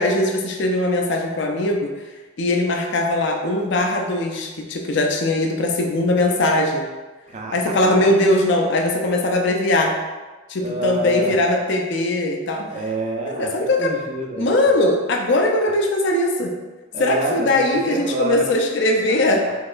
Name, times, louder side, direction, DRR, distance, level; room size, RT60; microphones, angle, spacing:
voice 1, 0.0-1.9 2.4-6.8 7.5-9.9 10.5-12.7 13.4-13.9 14.4-16.5 17.0-19.4, left 1 dB, 60° left, 2 dB, 0.5 m, -20 dB
voice 2, 7.3-8.1 10.6-11.4 12.7-14.5 16.9-18.5 19.1-19.2, right 2 dB, 35° right, 0 dB, 0.4 m, -27 dB
4.1 x 2.9 x 2.5 m, 1.3 s
head